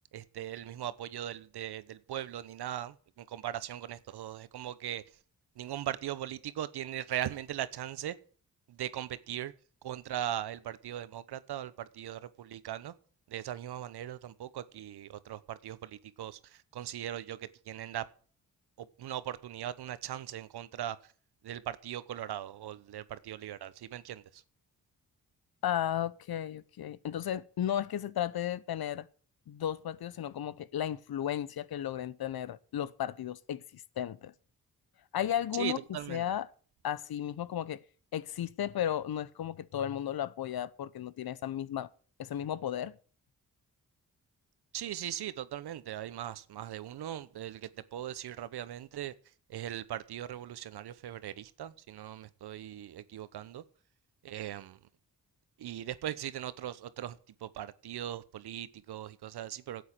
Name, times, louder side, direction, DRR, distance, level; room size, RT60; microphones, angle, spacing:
voice 1, 0.1-5.2 5.5-8.1 8.7-9.5 9.8-13.0 13.3-18.1 18.8-21.1 21.4-24.4 35.5-36.4 44.7-49.1 49.5-53.6 54.2-54.8 55.6-59.9, right 11 dB, 75° right, 1.0 m, -39 dB
voice 2, 25.6-29.1 29.5-34.3 35.1-35.8 36.1-36.5 36.8-37.8 38.1-41.9 42.2-43.0, left 10 dB, 65° left, 0.9 m, -34 dB
12.0 x 8.3 x 8.3 m
supercardioid pair, 50°, 39 cm